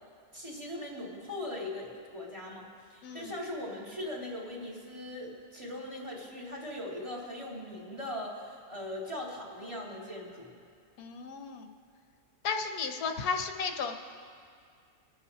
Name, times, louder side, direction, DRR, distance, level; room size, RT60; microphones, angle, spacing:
voice 1, 0.3-10.5, left 1 dB, 20° right, -4 dB, 2.0 m, -40 dB
voice 2, 11.0-11.7 12.4-14.0, left 5 dB, 85° left, 5 dB, 1.3 m, -34 dB
23.0 x 8.5 x 2.8 m, 2.2 s
omnidirectional pair, 1.5 m